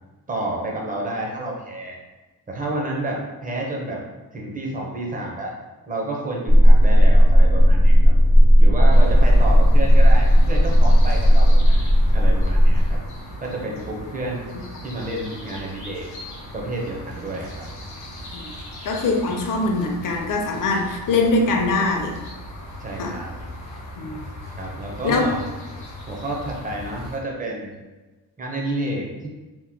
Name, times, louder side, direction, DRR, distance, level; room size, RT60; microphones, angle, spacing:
voice 1, 0.3-2.0 2.5-4.0 4.3-5.6 5.9-8.1 8.6-13.0 13.4-14.5 14.8-16.1 16.5-17.7 22.8-23.4 24.5-25.4 26.1-27.7 28.4-29.3, right 1 dB, 20° right, -1 dB, 0.5 m, -30 dB
sound 1, 6.5-13.0, equal, 65° right, 1.2 m, -13 dB
sound 2, 8.9-27.2, left 1 dB, 75° left, 0.9 m, -38 dB
voice 2, 18.8-22.1 23.0-23.2 24.0-24.2 25.0-25.3, left 3 dB, 55° left, 2 dB, 0.5 m, -22 dB
2.9 x 2.0 x 3.4 m, 1.2 s
wide cardioid pair, 155°, 39 cm